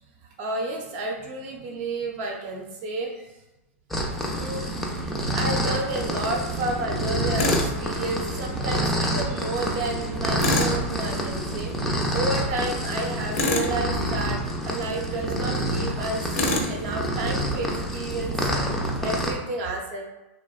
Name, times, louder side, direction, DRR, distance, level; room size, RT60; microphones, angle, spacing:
voice 1, 0.4-3.1 4.3-4.7 5.3-11.7 12.1-14.4 14.7-20.1, right 2 dB, 50° right, 0 dB, 0.6 m, -31 dB
sound 1, 3.9-19.3, equal, 5° left, 0.3 m, -27 dB
Tools, 7.4-7.7 10.4-10.8 13.3-13.8 16.3-16.7, left 2 dB, 90° left, 0.5 m, -25 dB
2.8 x 2.1 x 2.3 m, 0.99 s
hypercardioid pair, 135°, 8 cm